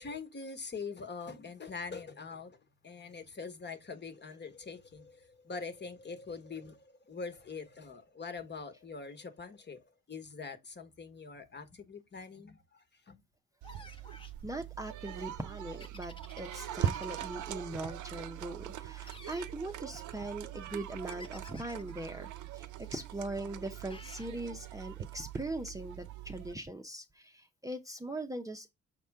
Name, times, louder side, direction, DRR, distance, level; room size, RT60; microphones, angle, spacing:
voice 1, 0.0-13.2, left 4 dB, 35° left, 1.4 m, -44 dB
sound 1, 13.6-14.4 15.8-17.5 19.0-19.5 21.1-21.9 23.9-24.3, left 2 dB, 15° left, 1.1 m, -52 dB
sound 2, 13.6-26.5, right 11 dB, 80° right, 0.8 m, -41 dB
voice 2, 14.4-28.7, right 2 dB, 10° right, 0.8 m, -41 dB
6.6 x 4.2 x 3.5 m
cardioid pair, 90°, 30 cm